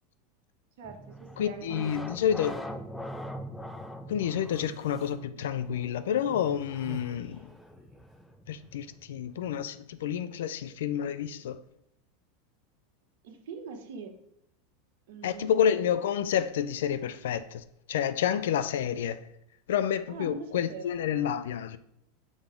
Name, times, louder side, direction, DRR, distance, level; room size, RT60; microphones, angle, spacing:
sound 1, 0.8-9.6, equal, 5° left, 0.5 m, -44 dB
voice 1, 0.8-2.7 13.2-14.1 15.1-15.5 20.1-21.0, right 5 dB, 70° right, 1.1 m, -43 dB
voice 2, 1.4-2.6 4.1-7.5 8.5-11.6 15.2-19.2 19.7-21.8, left 9 dB, 75° left, 0.4 m, -29 dB
Human voice, 4.4-5.2 6.1-8.1, equal, 10° right, 1.5 m, -49 dB
6.1 x 3.5 x 5.0 m
hypercardioid pair, 100°, 0 cm